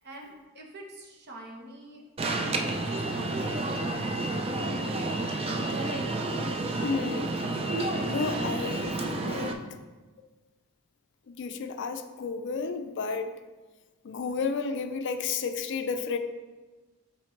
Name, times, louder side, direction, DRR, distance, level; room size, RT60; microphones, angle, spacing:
voice 1, 0.0-5.6 9.6-9.7, right 1 dB, 50° right, 0 dB, 1.0 m, -47 dB
Alarm, 2.2-9.5, right 2 dB, 25° right, 0.4 m, -30 dB
voice 2, 6.8-7.3 8.1-9.6 11.3-13.4 14.0-16.2, left 5 dB, 55° left, 8 dB, 0.4 m, -32 dB
7.1 x 4.2 x 3.2 m, 1.3 s
head